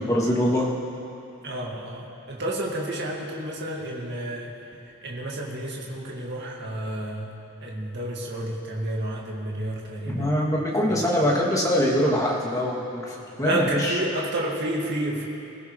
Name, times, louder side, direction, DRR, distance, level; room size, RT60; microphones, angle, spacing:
voice 1, 0.1-0.6 10.1-13.0 13.4-13.6, equal, 15° left, -6 dB, 2.6 m, -23 dB
voice 2, 1.4-4.5 5.0-7.3 7.6-10.3 10.8-11.3 13.4-15.3, right 1 dB, 50° right, -3 dB, 2.2 m, -30 dB
25.5 x 16.0 x 3.3 m, 2.8 s
head